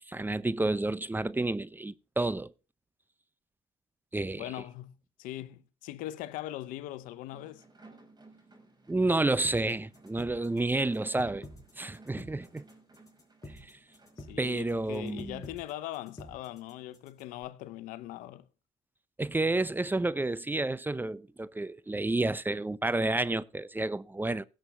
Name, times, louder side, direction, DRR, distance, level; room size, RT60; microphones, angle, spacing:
voice 1, 0.1-2.5 4.1-4.4 8.9-11.4 11.8-12.6 14.4-15.4 19.2-24.5, right 2 dB, 15° right, 0.5 m, -30 dB
voice 2, 4.4-7.6 14.2-18.5, left 14 dB, 85° left, 0.7 m, -41 dB
sound 1, 7.3-14.7, right 3 dB, 30° right, 5.1 m, -57 dB
sound 2, 9.4-17.4, left 1 dB, 25° left, 4.3 m, -48 dB
17.0 x 7.3 x 3.3 m
supercardioid pair, 60°, 14 cm